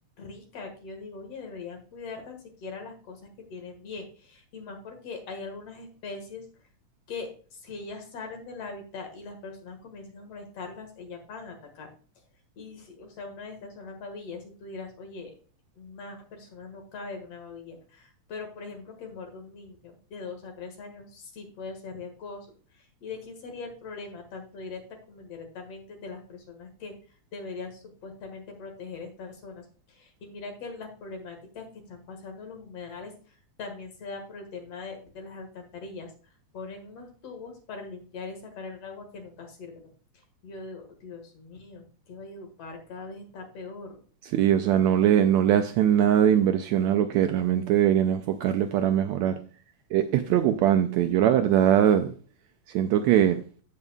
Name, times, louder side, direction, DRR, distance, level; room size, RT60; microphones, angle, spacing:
voice 1, 0.2-3.2 3.5-6.5 7.1-11.9 12.6-15.3 15.8-22.5 22.7-39.8 40.4-44.0, left 4 dB, 55° left, 2.6 m, -41 dB
voice 2, 44.3-49.3 49.9-52.1 52.7-53.4, right 10 dB, 80° right, 1.7 m, -21 dB
15.5 x 5.3 x 2.3 m
omnidirectional pair, 3.6 m